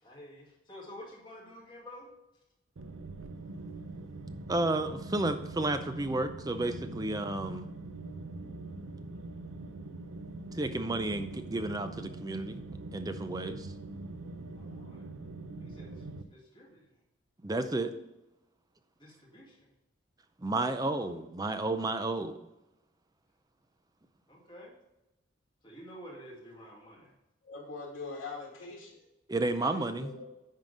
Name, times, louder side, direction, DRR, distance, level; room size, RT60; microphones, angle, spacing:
voice 1, 0.0-2.1 14.5-15.1 15.6-16.9 19.0-19.7 24.3-24.8 25.6-27.1, equal, 25° left, -4 dB, 2.3 m, -50 dB
sound 1, 2.8-16.2, right 2 dB, 80° right, 0.6 m, -43 dB
voice 2, 4.5-7.6 10.5-12.6 12.9-13.7 17.4-17.9 20.4-22.4 29.3-30.1, right 2 dB, 20° right, 9 dB, 0.5 m, -32 dB
voice 3, 27.4-29.0 29.6-30.2, left 3 dB, 75° left, -4 dB, 2.7 m, -43 dB
10.5 x 3.8 x 5.1 m, 0.94 s
head